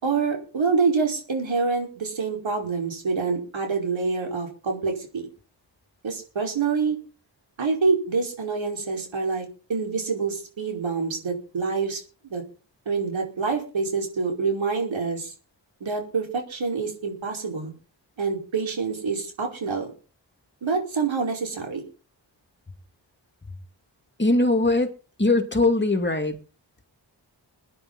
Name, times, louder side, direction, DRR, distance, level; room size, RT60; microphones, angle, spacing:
voice 1, 0.0-5.3 6.0-7.0 7.6-12.4 12.8-15.3 15.8-17.7 18.2-19.9 20.6-21.8, right 4 dB, 90° right, 1 dB, 4.9 m, -26 dB
voice 2, 24.2-24.9 25.2-26.4, left 2 dB, 25° left, 6 dB, 2.3 m, -21 dB
22.0 x 10.0 x 4.1 m, 0.36 s
wide cardioid pair, 90°, 45 cm